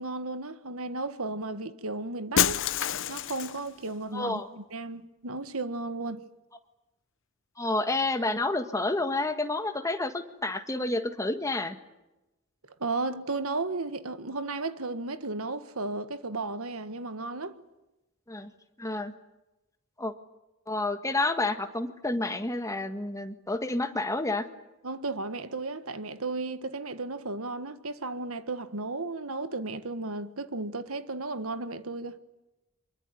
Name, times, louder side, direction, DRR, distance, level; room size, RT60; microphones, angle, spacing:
voice 1, 0.0-2.6 3.1-6.2 12.8-17.6 24.8-32.2, right 3 dB, 75° right, 1.6 m, -34 dB
Shatter, 2.4-3.7, left 9 dB, 60° left, 0.9 m, -27 dB
voice 2, 4.1-4.5 7.6-11.8 18.3-18.5 18.8-19.1 20.0-20.1 20.7-24.4, left 2 dB, 15° left, 1.6 m, -29 dB
24.5 x 23.0 x 9.3 m
head